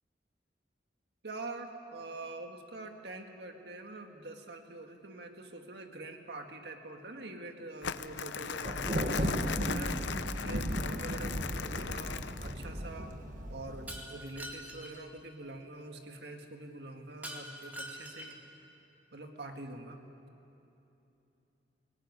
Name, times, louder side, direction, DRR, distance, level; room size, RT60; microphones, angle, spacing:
voice 1, 1.2-13.1 13.5-18.4 19.1-20.0, right 2 dB, 65° right, 4 dB, 1.9 m, -45 dB
Crumpling crinkling, 7.8-12.7, left 6 dB, 90° left, 0.7 m, -38 dB
Thunder, 8.6-14.0, equal, 45° right, 1.6 m, -35 dB
Shatter, 13.9-15.0 17.2-18.5, equal, 10° right, 2.1 m, -44 dB
23.0 x 18.0 x 9.6 m, 2.9 s
head